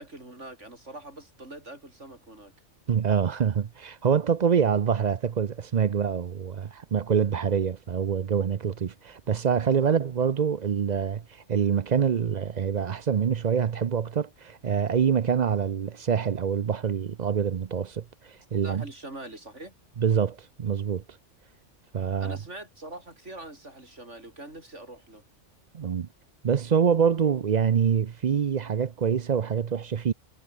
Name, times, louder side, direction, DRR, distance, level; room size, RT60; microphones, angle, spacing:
voice 1, 0.0-2.5 9.8-9.9 18.6-19.7 22.2-25.2, right 2 dB, 70° right, 6.7 m, -43 dB
voice 2, 2.9-11.2 11.5-18.8 20.0-21.0 21.9-22.4 25.7-26.1 26.4-30.1, right 7 dB, 45° right, 0.6 m, -25 dB
omnidirectional pair, 1.3 m